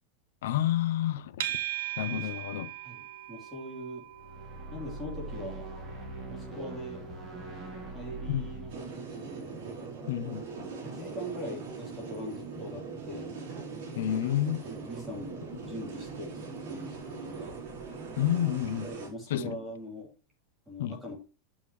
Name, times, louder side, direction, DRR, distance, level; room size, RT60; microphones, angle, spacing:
voice 1, 0.4-1.6 2.0-2.7 8.3-8.5 10.1-10.4 14.0-14.7 18.2-18.9 19.3-19.6 20.8-21.0, left 11 dB, 80° left, 0.9 m, -29 dB
sound 1, 1.4-18.6, right 11 dB, 85° right, 1.3 m, -44 dB
voice 2, 3.3-4.1 4.7-5.7 6.2-7.0 7.9-9.5 10.8-13.3 14.6-17.5 18.8-20.1 20.7-21.2, equal, ahead, 3.1 m, -42 dB
sound 2, 4.1-10.4, right 2 dB, 20° right, 2.4 m, -42 dB
sound 3, 8.7-19.1, right 4 dB, 55° right, 4.5 m, -41 dB
8.7 x 7.3 x 3.2 m
supercardioid pair, 180°, 0 cm